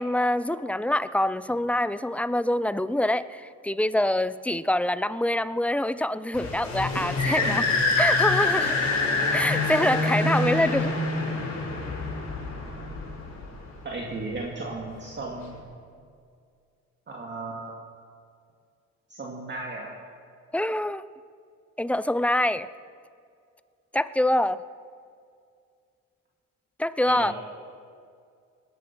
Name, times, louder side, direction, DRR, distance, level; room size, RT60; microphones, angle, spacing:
voice 1, 0.0-7.6 8.0-8.8 9.3-10.9 20.5-21.0 21.8-22.7 23.9-24.6 26.8-27.3, left 1 dB, 5° left, 15 dB, 0.4 m, -25 dB
sound 1, 6.3-13.7, left 3 dB, 65° left, 5.1 m, -26 dB
voice 2, 7.3-7.7 13.8-15.6 17.1-17.7 19.1-20.0 27.1-27.3, right 3 dB, 35° right, -2 dB, 2.2 m, -35 dB
18.5 x 10.5 x 6.1 m, 2.3 s
cardioid pair, 90°, 30 cm